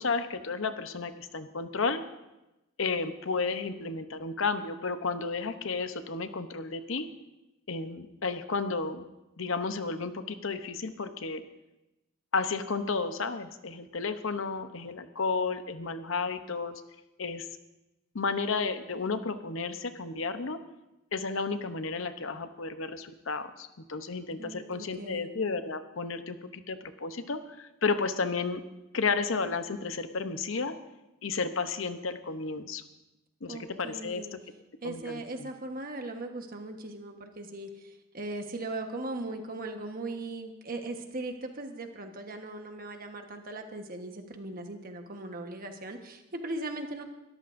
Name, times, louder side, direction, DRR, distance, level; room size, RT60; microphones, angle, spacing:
voice 1, 0.0-2.0 2.8-7.1 7.7-9.0 9.4-11.4 12.3-16.8 17.2-17.5 18.1-20.6 21.1-28.6 28.9-30.7 31.2-32.8 33.4-34.4 34.8-35.5, left 4 dB, 70° left, 10 dB, 0.8 m, -32 dB
voice 2, 24.4-25.3 33.5-34.3 34.8-47.0, right 2 dB, 45° right, 5 dB, 1.3 m, -39 dB
21.5 x 13.5 x 2.6 m, 0.99 s
head